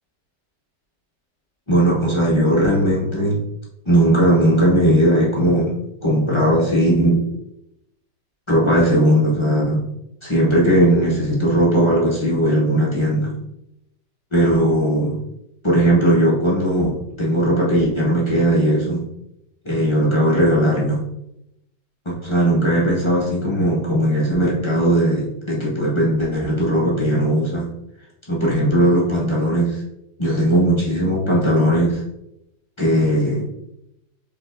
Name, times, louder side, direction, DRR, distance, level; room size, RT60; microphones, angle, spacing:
voice 1, 1.7-3.4 3.8-5.7 6.0-7.2 8.5-9.8 10.2-13.3 14.3-15.2 15.6-19.0 19.6-21.0 22.2-27.7 28.3-29.8 30.2-32.0 32.8-33.5, right 1 dB, 20° left, -6 dB, 0.8 m, -18 dB
4.7 x 4.1 x 2.6 m, 0.83 s
omnidirectional pair, 1.9 m